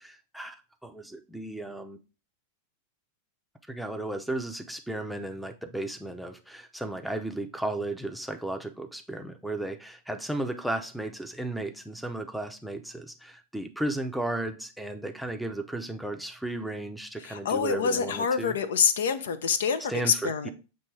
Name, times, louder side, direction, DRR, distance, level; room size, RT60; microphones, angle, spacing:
voice 1, 0.0-2.0 3.7-18.6 19.9-20.5, right 2 dB, ahead, 0.7 m, -34 dB
voice 2, 17.2-20.5, left 6 dB, 60° left, 0.6 m, -26 dB
7.3 x 3.0 x 4.6 m
figure-of-eight pair, 90°, 0 cm